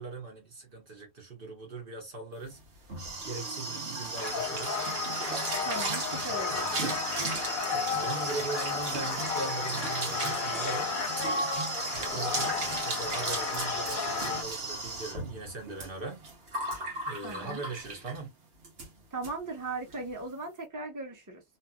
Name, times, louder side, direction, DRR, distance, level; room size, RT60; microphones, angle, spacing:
voice 1, 0.0-2.6 3.2-4.8 5.6-7.0 7.7-11.0 11.9-16.3 16.7-18.3, right 3 dB, 55° right, 1.0 m, -40 dB
sound 1, 2.5-18.3 18.6-18.9 19.2-19.3 19.6-20.0, right 3 dB, 75° right, 1.2 m, -35 dB
sound 2, 4.2-14.4, left 5 dB, 55° left, 0.7 m, -33 dB
voice 2, 5.6-6.7 17.2-17.6 19.1-21.4, right 2 dB, 20° right, 0.8 m, -38 dB
2.7 x 2.5 x 2.2 m
omnidirectional pair, 1.2 m